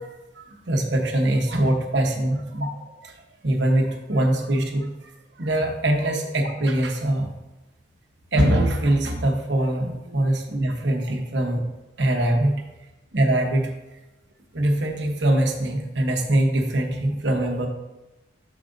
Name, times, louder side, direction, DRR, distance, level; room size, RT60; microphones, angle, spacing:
voice 1, 0.0-2.7 3.0-3.1 3.4-4.9 5.4-7.3 8.3-11.6 12.0-12.5 13.1-13.7 14.5-17.7, right 1 dB, 65° right, 2 dB, 1.0 m, -22 dB
7.4 x 7.0 x 2.6 m, 1.0 s
head